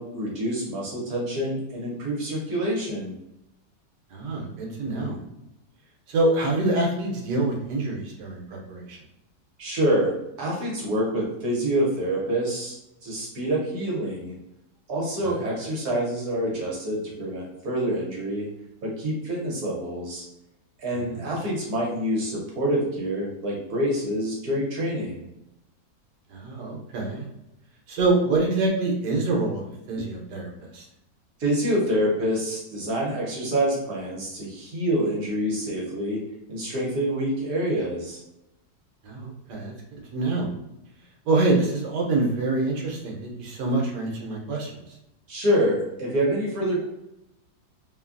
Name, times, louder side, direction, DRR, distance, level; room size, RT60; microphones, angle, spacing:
voice 1, 0.0-3.1 9.6-12.8 13.0-14.3 14.9-18.5 18.8-20.2 20.8-25.2 31.4-36.2 36.5-38.2 45.3-46.8, right 1 dB, 65° right, -4 dB, 1.4 m, -26 dB
voice 2, 4.1-5.2 6.1-9.0 15.2-15.3 21.1-21.2 26.3-27.2 27.9-30.8 39.0-39.7 40.1-40.5 41.3-44.7, right 2 dB, 85° right, -1 dB, 1.4 m, -26 dB
3.1 x 2.2 x 2.4 m, 0.85 s
omnidirectional pair, 1.8 m